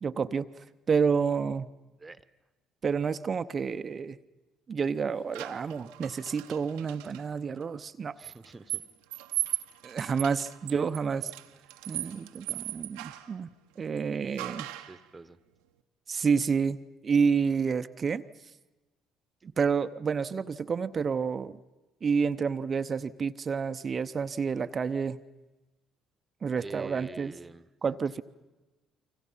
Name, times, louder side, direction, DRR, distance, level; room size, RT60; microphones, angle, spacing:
voice 1, 0.0-0.5 0.9-1.7 2.8-4.2 4.7-8.2 9.8-11.3 11.9-13.5 13.8-14.7 16.1-18.2 19.4-21.6 22.0-25.2 26.4-27.3 27.8-28.2, right 6 dB, 40° right, 13 dB, 0.8 m, -29 dB
sound 1, 5.3-7.2 8.2-13.3 14.4-15.0, right 17 dB, 80° right, 0.9 m, -37 dB
voice 2, 8.2-8.8 14.8-15.4 26.6-27.7, right 3 dB, 25° right, 15 dB, 1.1 m, -46 dB
29.5 x 24.5 x 5.7 m, 1.1 s
hypercardioid pair, 55°, 0 cm